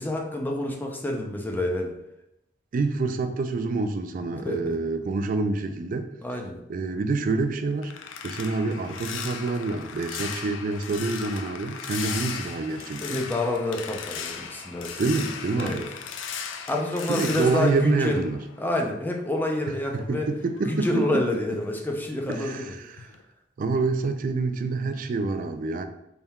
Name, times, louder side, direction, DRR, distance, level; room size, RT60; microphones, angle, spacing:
voice 1, 0.0-1.9 4.4-4.8 6.2-6.6 13.0-15.0 15.6-15.8 16.7-18.2 18.6-20.3 20.6-22.7, left 1 dB, 10° left, 1 dB, 0.5 m, -28 dB
voice 2, 2.7-6.1 6.7-7.9 8.2-13.2 15.0-15.9 17.1-18.4 19.6-21.2 22.3-22.8 23.6-25.8, right 3 dB, 45° right, 8 dB, 0.3 m, -27 dB
sound 1, 7.3-18.9 19.3-21.9 22.3-22.6 23.0-23.2, left 6 dB, 80° left, 0.4 m, -37 dB
4.1 x 3.5 x 2.3 m, 0.83 s
head